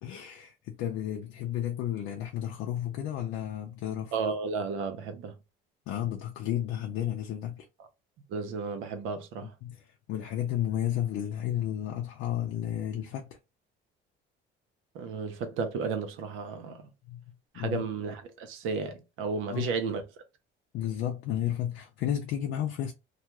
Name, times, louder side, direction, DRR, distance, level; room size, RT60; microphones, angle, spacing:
voice 1, 0.0-4.1 5.9-7.7 9.4-13.4 17.1-17.2 17.5-17.8 19.5-19.7 20.7-22.9, left 11 dB, 75° left, 0.5 m, -32 dB
voice 2, 4.1-5.3 8.3-9.5 14.9-16.9 17.5-20.0, right 5 dB, 80° right, 0.7 m, -33 dB
2.4 x 2.3 x 2.9 m
cardioid pair, 155°, 20 cm